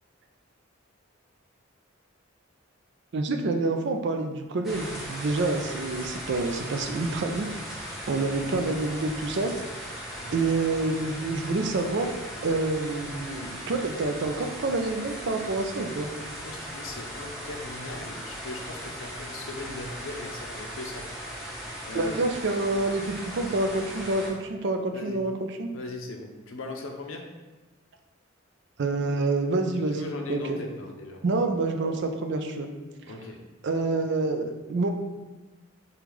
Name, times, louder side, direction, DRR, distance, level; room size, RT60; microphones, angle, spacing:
voice 1, 3.1-7.6 8.1-9.5 10.3-12.1 12.4-16.1 21.9-25.7 28.8-30.6 31.2-32.7 33.6-34.9, right 3 dB, 60° right, 5 dB, 0.4 m, -27 dB
sound 1, 4.6-24.3, equal, ahead, 0.7 m, -38 dB
voice 2, 16.4-21.1 21.3-21.4 21.8-22.1 24.9-25.2 25.7-27.2 29.9-31.2 33.1-33.4, left 2 dB, 75° left, 3 dB, 0.6 m, -39 dB
5.2 x 2.3 x 3.1 m, 1.2 s
head